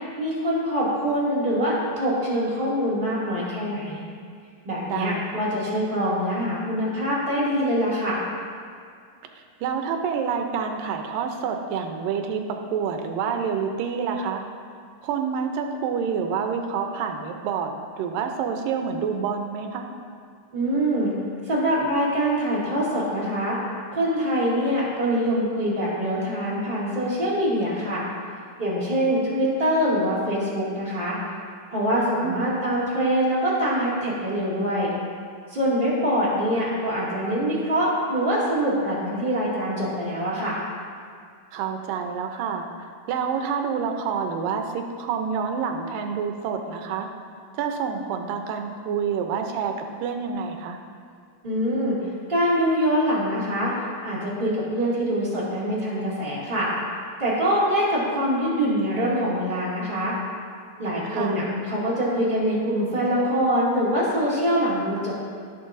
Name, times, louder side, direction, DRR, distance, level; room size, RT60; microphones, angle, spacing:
voice 1, 0.2-4.0 4.6-8.2 20.5-21.1 21.4-23.6 23.9-28.0 28.6-31.2 31.7-34.9 35.5-40.6 51.4-52.0 52.3-53.7 54.0-56.7 57.2-60.1 60.8-65.1, equal, 15° right, -9 dB, 2.1 m, -24 dB
voice 2, 4.9-5.5 9.6-14.4 15.0-19.9 32.0-32.5 41.5-42.7 43.1-47.1 47.6-49.7 50.0-50.8 61.1-61.4, right 6 dB, 85° right, 4 dB, 2.4 m, -28 dB
16.0 x 6.3 x 2.6 m, 2.2 s
omnidirectional pair, 3.9 m